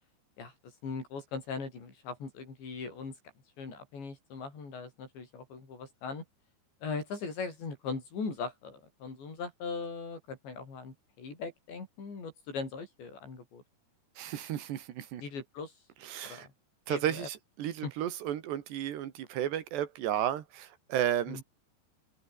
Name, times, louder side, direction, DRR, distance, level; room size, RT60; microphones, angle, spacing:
voice 1, 0.4-3.2 3.6-6.2 6.8-13.6 15.2-15.7 16.2-16.5 16.9-17.3 17.8-17.9 21.3-21.4, left 4 dB, 75° left, 9.9 m, -40 dB
voice 2, 14.2-15.2 16.0-16.5 16.9-21.4, right 11 dB, 75° right, 4.0 m, -33 dB
open air
omnidirectional pair, 5.1 m